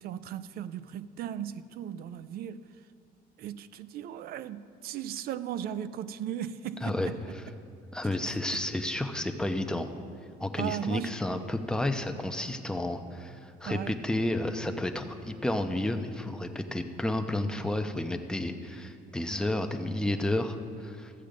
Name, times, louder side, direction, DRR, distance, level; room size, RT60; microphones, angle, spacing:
voice 1, 0.0-2.6 3.4-7.2 8.5-8.6 10.6-11.2 13.7-13.9, right 10 dB, 65° right, 0.4 m, -37 dB
voice 2, 6.8-7.4 7.9-9.9 10.4-21.1, left 1 dB, 5° left, 0.7 m, -31 dB
13.5 x 7.5 x 5.1 m
cardioid pair, 110°, 17 cm